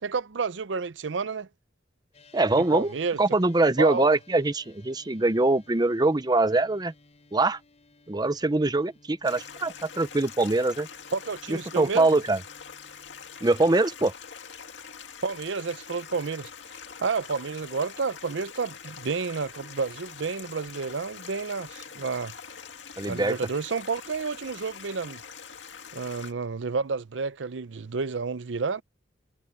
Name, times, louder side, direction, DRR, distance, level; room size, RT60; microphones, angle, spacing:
voice 1, 0.0-1.5 2.6-3.2 3.8-4.1 11.1-12.1 15.2-16.5 17.0-22.3 23.1-25.2 25.9-28.8, right 4 dB, 80° right, 0.6 m, -30 dB
sound 1, 2.1-13.7, left 2 dB, 35° left, 4.8 m, -58 dB
voice 2, 2.3-6.9 7.3-7.6 8.1-10.9 11.5-12.4 13.4-14.1 23.0-23.4, right 2 dB, 20° right, 0.7 m, -23 dB
Stream, 9.2-26.3, left 7 dB, 75° left, 2.1 m, -44 dB
head